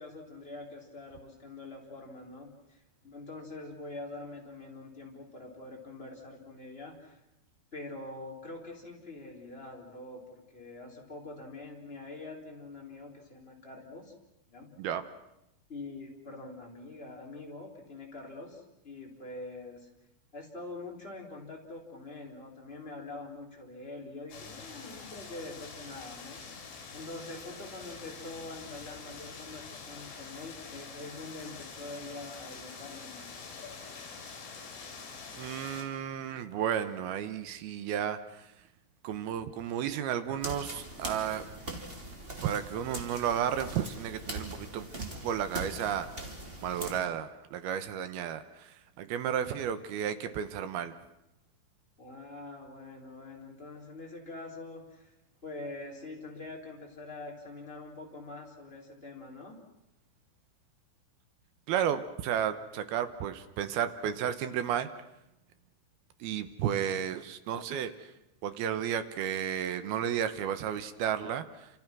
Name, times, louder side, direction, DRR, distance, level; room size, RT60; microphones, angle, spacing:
voice 1, 0.0-7.2 7.7-14.1 14.5-14.7 15.7-19.9 20.3-26.4 26.9-33.3 52.0-55.1 55.4-59.6, left 2 dB, 15° left, -1 dB, 3.9 m, -44 dB
sound 1, 24.3-35.8, left 5 dB, 75° left, 6.9 m, -46 dB
voice 2, 35.4-38.5 39.0-41.4 42.4-46.1 46.6-50.9 61.7-64.9 66.2-68.1 68.4-71.7, right 9 dB, 70° right, 10 dB, 2.4 m, -33 dB
sound 2, 40.4-47.0, right 1 dB, 15° right, 2.3 m, -41 dB
29.0 x 27.5 x 6.1 m, 0.86 s
omnidirectional pair, 5.5 m